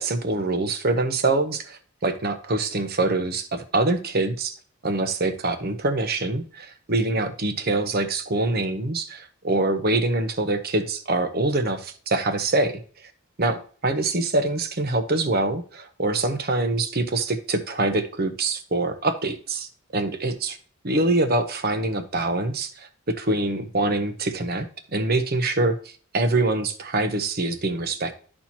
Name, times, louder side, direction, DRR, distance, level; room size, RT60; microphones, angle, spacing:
voice 1, 0.0-4.5 4.8-12.8 13.4-13.6 13.8-20.6 20.8-24.7 24.9-25.8 26.1-28.1, right 2 dB, 45° right, 8 dB, 0.9 m, -24 dB
12.5 x 4.4 x 2.9 m, 0.43 s
head